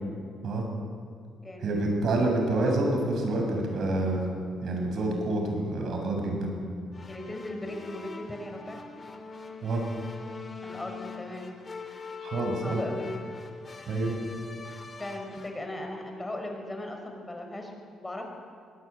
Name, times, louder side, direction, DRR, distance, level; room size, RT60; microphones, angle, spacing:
voice 1, 1.6-4.2 4.6-6.5 9.6-9.8 12.2-12.8 13.9-14.2, right 2 dB, 65° right, 2 dB, 7.6 m, -27 dB
sound 1, 6.9-15.7, left 4 dB, 35° left, 3.3 m, -42 dB
voice 2, 7.1-8.9 10.6-11.7 12.4-13.2 14.5-14.6 15.0-18.2, left 1 dB, 15° left, 3 dB, 5.8 m, -38 dB
24.0 x 19.5 x 10.0 m, 2.1 s
cardioid pair, 90°, 0 cm